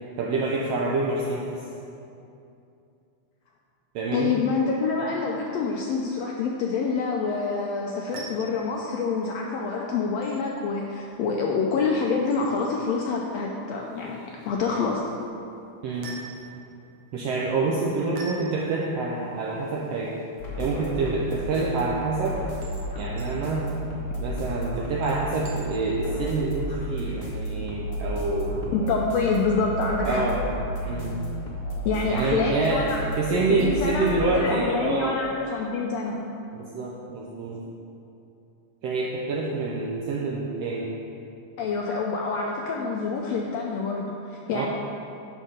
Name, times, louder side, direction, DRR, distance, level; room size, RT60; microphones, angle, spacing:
voice 1, 0.0-1.6 3.9-4.4 15.8-16.1 17.1-20.1 20.6-22.4 22.9-23.7 24.2-28.9 30.0-30.4 30.9-31.2 32.0-35.2 36.5-37.6 38.8-40.9 44.5-44.7, right 3 dB, 80° right, -3 dB, 1.4 m, -27 dB
voice 2, 4.1-15.0 18.1-18.2 28.7-30.3 31.8-36.2 41.6-44.7, left 4 dB, 80° left, -1 dB, 1.5 m, -27 dB
sound 1, 7.9-26.1, right 2 dB, 60° right, 1.7 m, -48 dB
sound 2, 20.4-34.3, equal, 45° left, 0.9 m, -32 dB
10.0 x 3.6 x 6.5 m, 2.7 s
omnidirectional pair, 3.5 m